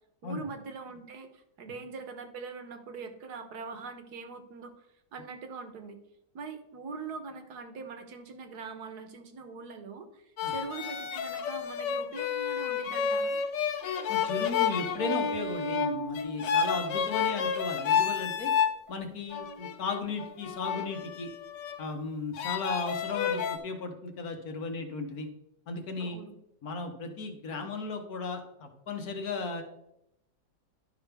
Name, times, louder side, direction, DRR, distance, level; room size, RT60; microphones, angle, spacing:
voice 1, 0.2-4.9 5.1-6.0 6.3-13.4 26.0-26.3, right 4 dB, 65° right, 7 dB, 1.5 m, -42 dB
sound 1, 10.4-18.8 19.3-21.8 22.3-23.6, left 7 dB, 75° left, 1.3 m, -30 dB
voice 2, 14.1-18.5 18.9-21.3 21.8-25.3 25.7-26.2 26.6-29.6, left 3 dB, 60° left, 5 dB, 1.5 m, -36 dB
11.5 x 5.5 x 3.4 m, 0.83 s
omnidirectional pair, 2.0 m